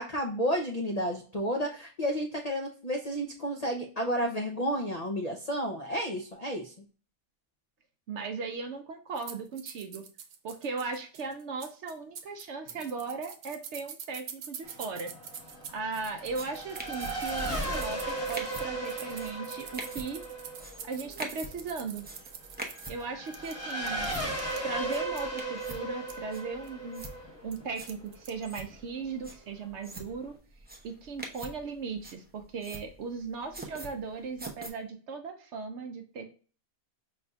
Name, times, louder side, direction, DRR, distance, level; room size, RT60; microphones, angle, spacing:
voice 1, 0.0-6.7, equal, 55° left, 2 dB, 0.4 m, -31 dB
voice 2, 8.1-10.0 10.4-15.1 15.7-20.2 20.8-22.1 22.9-24.1 24.6-27.0 27.4-30.3 30.8-36.2, right 4 dB, 65° right, 6 dB, 0.8 m, -37 dB
sound 1, 9.2-24.6 25.0-25.3 25.7-25.8 26.1-26.2 26.6-26.7 27.0-27.1 27.5-28.5, right 8 dB, 90° right, 1.2 m, -45 dB
Race car auto racing / Accelerating revving vroom, 14.6-28.7, right 2 dB, 10° left, 0.9 m, -37 dB
sound 2, 16.1-34.7, right 1 dB, 15° right, 0.3 m, -46 dB
5.3 x 3.3 x 2.2 m, 0.40 s
omnidirectional pair, 1.5 m